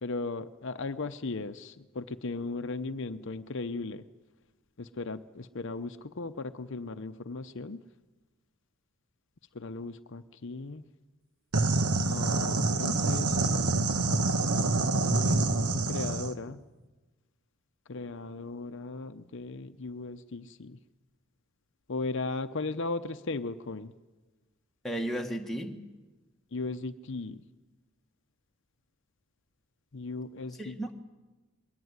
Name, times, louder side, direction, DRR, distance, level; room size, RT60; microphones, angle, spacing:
voice 1, 0.0-4.0 4.8-7.8 9.5-10.8 12.0-13.8 14.9-16.6 17.9-20.8 21.9-24.0 26.5-27.4 29.9-30.9, left 3 dB, 55° left, 10 dB, 0.7 m, -37 dB
sound 1, 11.5-16.3, right 2 dB, 90° right, 1.3 m, -26 dB
voice 2, 24.8-25.9 30.6-30.9, right 1 dB, ahead, 1 dB, 1.6 m, -34 dB
22.0 x 17.5 x 9.7 m, 1.2 s
head